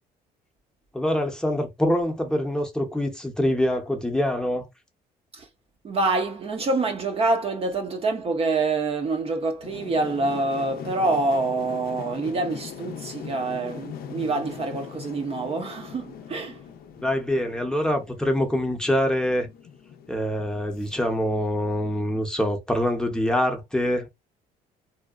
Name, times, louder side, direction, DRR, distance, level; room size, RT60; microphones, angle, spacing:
voice 1, 0.9-4.7 17.0-19.5 20.1-24.1, equal, 5° left, 0.7 m, -25 dB
voice 2, 5.8-16.6, right 3 dB, 35° right, 0.5 m, -26 dB
sound 1, 9.6-21.4, left 8 dB, 65° left, 0.5 m, -41 dB
2.7 x 2.1 x 2.4 m
cardioid pair, 110°, 17 cm